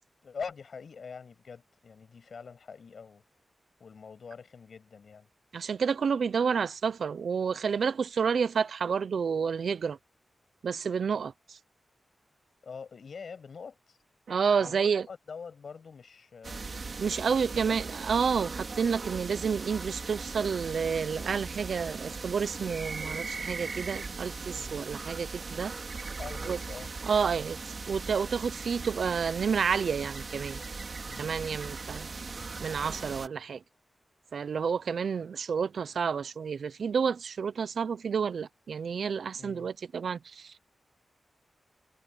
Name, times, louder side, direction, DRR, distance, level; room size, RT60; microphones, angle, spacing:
voice 1, 0.2-3.2 3.8-5.3 12.6-14.0 14.6-16.7 17.1-17.4 17.7-18.0 24.5-24.7 26.2-26.9 31.0-31.3 39.3-39.7, left 5 dB, 65° left, 7.7 m, -44 dB
voice 2, 5.5-10.0 10.6-11.6 14.3-15.1 17.0-25.7 26.5-26.6 27.0-27.6 27.9-30.6 31.2-32.1 32.6-33.6 34.3-40.6, right 6 dB, 75° right, 0.6 m, -30 dB
sound 1, 16.4-33.3, right 4 dB, 45° right, 2.4 m, -39 dB
wide cardioid pair, 145°, 0 cm